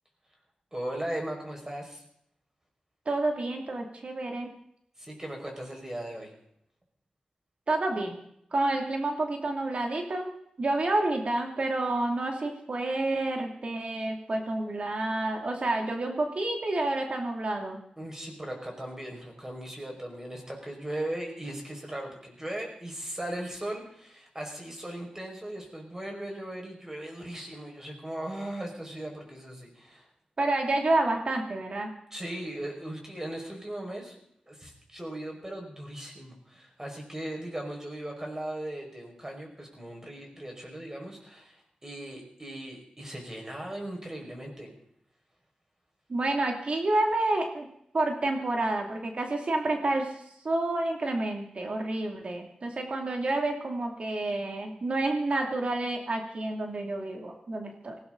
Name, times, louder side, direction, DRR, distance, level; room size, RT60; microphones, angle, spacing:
voice 1, 0.7-2.0 5.0-6.3 18.0-30.1 32.1-34.2 34.5-44.7, right 1 dB, 20° right, 1 dB, 5.6 m, -38 dB
voice 2, 3.1-4.5 7.7-8.2 8.5-10.3 10.6-17.8 30.4-31.9 46.1-47.7 47.9-50.1 50.4-58.0, right 2 dB, 55° right, 2 dB, 2.7 m, -29 dB
19.0 x 16.5 x 4.0 m, 0.73 s
wide cardioid pair, 75°, 2 cm